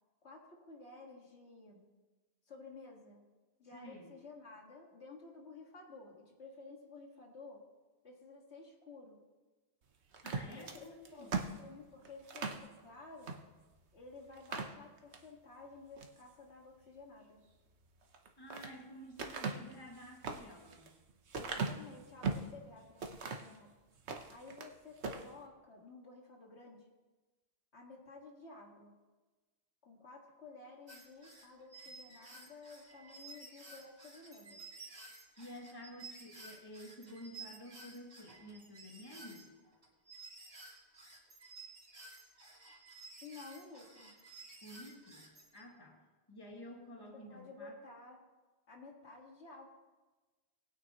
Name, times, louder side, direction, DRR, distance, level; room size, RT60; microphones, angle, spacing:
voice 1, 0.2-1.9 2.5-3.3 3.6-7.6 8.0-9.2 10.4-11.3 11.6-13.4 13.9-17.5 21.3-23.7 24.3-26.9 27.7-29.0 29.8-34.7 43.2-44.2 47.3-48.2 48.7-49.7, left 3 dB, 80° left, 0 dB, 2.1 m, -53 dB
voice 2, 3.7-4.1 10.2-11.4 18.4-21.0 35.4-39.5 44.6-46.0 46.3-47.7, equal, 20° left, 0 dB, 1.8 m, -51 dB
sound 1, 10.1-12.7 13.2-13.4 13.8-13.9 14.3-15.3 15.8-16.2 18.0-18.7 19.2-22.5 23.0-23.6 24.0-24.7 25.0-25.3, right 4 dB, 80° right, 1.2 m, -40 dB
sound 2, 30.9-45.6, right 3 dB, 55° right, 2.8 m, -53 dB
20.0 x 9.4 x 3.0 m, 1.2 s
omnidirectional pair, 1.1 m